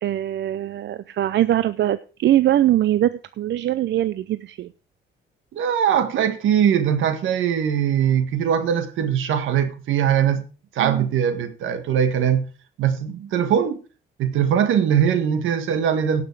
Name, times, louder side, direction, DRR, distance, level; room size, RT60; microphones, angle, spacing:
voice 1, 0.0-4.7 10.8-11.1, right 13 dB, 65° right, 0.5 m, -22 dB
voice 2, 5.5-10.4 10.7-12.5 12.8-13.8 14.2-16.2, right 8 dB, 80° right, 1.7 m, -21 dB
17.5 x 6.1 x 4.7 m
cardioid pair, 90°, 20 cm